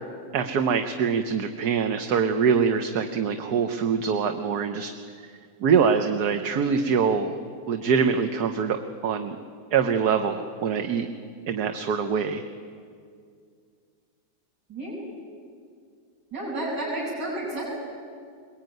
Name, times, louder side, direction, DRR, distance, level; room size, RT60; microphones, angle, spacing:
voice 1, 0.3-4.9 5.2-5.3 5.6-7.3 7.7-9.4 9.7-11.1 11.5-12.4, right 6 dB, 70° right, 6 dB, 1.5 m, -24 dB
voice 2, 16.3-17.7, right 1 dB, 90° right, -8 dB, 6.9 m, -31 dB
22.0 x 21.0 x 9.3 m, 2.2 s
omnidirectional pair, 1.8 m